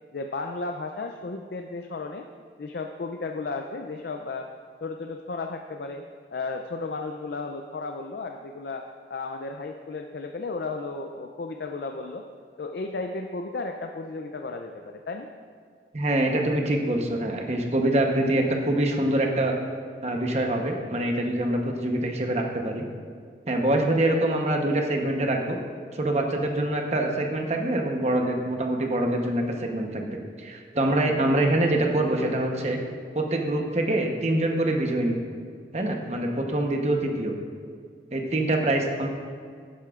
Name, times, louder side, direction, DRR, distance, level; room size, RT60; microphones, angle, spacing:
voice 1, 0.1-2.3 2.6-4.5 4.8-6.0 6.3-8.8 9.1-12.2 12.6-15.3, left 3 dB, 65° left, 4 dB, 0.4 m, -34 dB
voice 2, 15.9-19.5 20.0-22.8 23.5-25.6 25.9-32.8 33.1-35.2 35.7-37.4 38.1-39.1, right 1 dB, 35° right, 2 dB, 0.9 m, -25 dB
13.0 x 10.0 x 2.5 m, 2.1 s
head